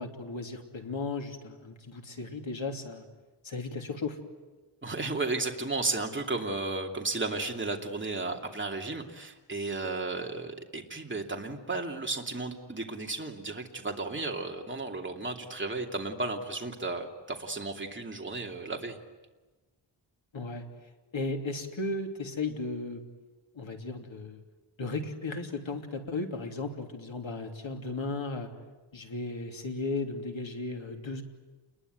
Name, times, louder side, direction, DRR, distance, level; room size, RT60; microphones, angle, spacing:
voice 1, 0.0-3.1 3.4-4.2 20.3-20.6 21.1-23.0 23.5-24.4 24.8-28.5 28.9-31.2, left 3 dB, 70° left, 4 dB, 3.2 m, -35 dB
voice 2, 4.8-19.0, right 3 dB, 25° right, 1 dB, 2.8 m, -34 dB
29.0 x 21.5 x 9.5 m, 1.2 s
wide cardioid pair, 110°, 47 cm